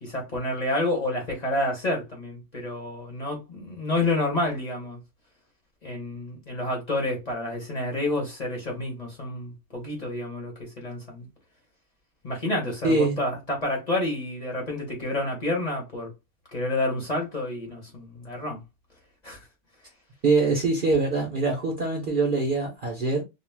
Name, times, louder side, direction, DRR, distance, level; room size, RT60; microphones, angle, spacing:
voice 1, 0.0-5.0 5.8-11.3 12.2-16.1 16.5-18.6 19.2-19.4, left 1 dB, 35° left, 0.9 m, -29 dB
voice 2, 12.8-13.2 20.2-23.2, right 3 dB, 50° right, 0.7 m, -23 dB
2.4 x 2.2 x 3.2 m
omnidirectional pair, 1.4 m